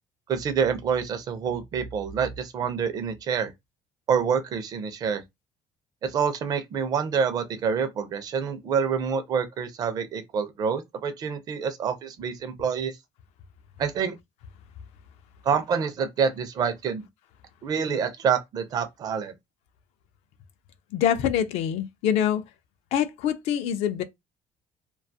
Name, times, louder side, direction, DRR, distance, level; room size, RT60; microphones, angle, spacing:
voice 1, 0.3-3.5 4.1-5.2 6.0-13.0 13.8-14.2 15.4-17.0 17.6-19.3, right 6 dB, 35° right, 0.4 m, -27 dB
voice 2, 20.9-22.4 22.9-24.0, left 9 dB, 65° left, 0.4 m, -25 dB
2.4 x 2.3 x 2.6 m
cardioid pair, 180°, 11 cm